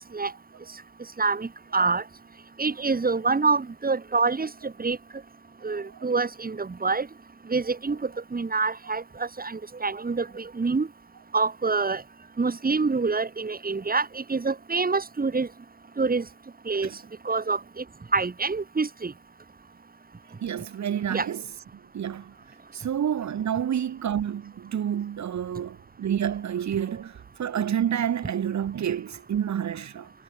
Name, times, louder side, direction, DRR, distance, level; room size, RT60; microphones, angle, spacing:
voice 1, 1.2-2.0 2.6-5.0 5.6-7.1 7.5-10.9 11.3-12.0 12.4-15.5 16.0-16.2 16.7-16.9 17.3-17.8 18.1-19.1 21.1-21.3, right 4 dB, 30° right, 3.7 m, -26 dB
voice 2, 20.4-21.5 21.9-22.3 22.7-30.1, right 9 dB, 65° right, 4.3 m, -29 dB
cardioid pair, 80°, 31 cm